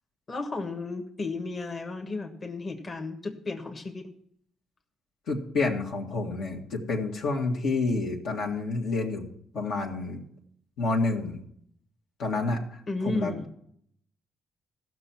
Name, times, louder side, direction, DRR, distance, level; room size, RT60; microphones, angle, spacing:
voice 1, 0.3-4.1 12.9-13.5, left 3 dB, 35° left, 4 dB, 1.4 m, -33 dB
voice 2, 5.3-9.3 9.5-10.2 10.8-11.4 12.2-13.3, left 3 dB, 75° left, 0 dB, 1.9 m, -29 dB
15.0 x 6.3 x 6.0 m, 0.68 s
cardioid pair, 90°, 0 cm